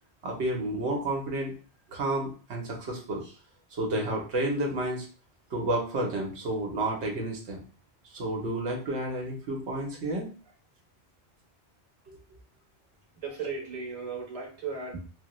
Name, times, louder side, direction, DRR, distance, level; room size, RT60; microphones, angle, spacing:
voice 1, 0.2-1.5 1.9-3.3 3.8-5.1 5.5-7.6 8.1-10.3 12.1-12.2, right 1 dB, 85° right, -1 dB, 1.1 m, -31 dB
voice 2, 13.2-15.1, right 4 dB, 35° right, -2 dB, 1.0 m, -36 dB
3.2 x 2.1 x 2.9 m, 0.37 s
omnidirectional pair, 1.1 m